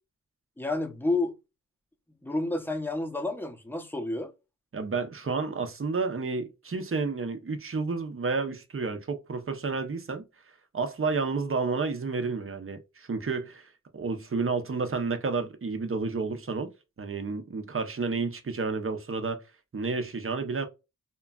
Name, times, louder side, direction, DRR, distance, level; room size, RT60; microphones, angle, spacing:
voice 1, 0.6-1.3 2.2-4.3, left 2 dB, 5° left, 0.7 m, -30 dB
voice 2, 4.7-10.2 10.7-16.7 17.0-19.4 19.7-20.7, right 4 dB, 40° right, 0.7 m, -30 dB
2.9 x 2.3 x 2.2 m
wide cardioid pair, 60°, 34 cm